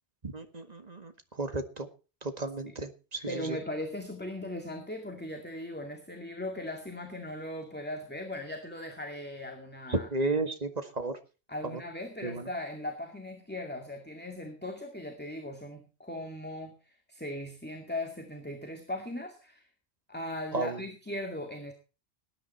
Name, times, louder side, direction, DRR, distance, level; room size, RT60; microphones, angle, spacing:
voice 1, 0.2-1.9 2.2-3.6 9.9-11.1 11.6-11.8 12.2-12.5 20.5-20.8, right 2 dB, 35° right, 8 dB, 1.9 m, -33 dB
voice 2, 3.3-10.1 11.5-19.7 20.1-21.7, left 1 dB, 10° left, 3 dB, 2.1 m, -38 dB
19.0 x 10.0 x 4.3 m, 0.34 s
omnidirectional pair, 1.2 m